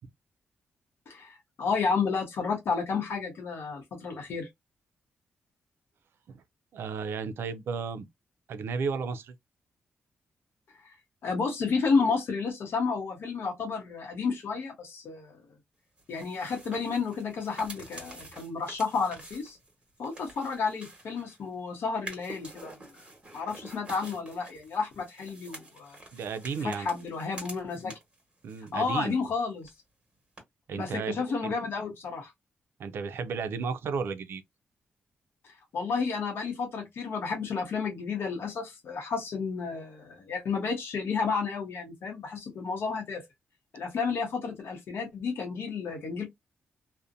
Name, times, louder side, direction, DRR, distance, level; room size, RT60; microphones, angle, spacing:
voice 1, 1.1-4.5 10.8-11.0 11.2-15.4 16.1-19.6 20.0-22.8 23.3-26.0 26.6-27.9 28.7-29.7 30.7-32.3 35.4-43.2 43.7-46.2, left 5 dB, 70° left, 0.7 m, -31 dB
voice 2, 6.7-8.1 8.5-9.3 26.1-26.9 28.4-29.2 30.7-31.5 32.8-34.4, right 5 dB, 70° right, 0.4 m, -33 dB
sound 1, 16.0-21.5 21.9-28.2 28.5-29.4 29.6-29.7 30.4-30.5, right 2 dB, 25° right, 1.1 m, -48 dB
2.5 x 2.1 x 2.5 m
cardioid pair, 100°, 4 cm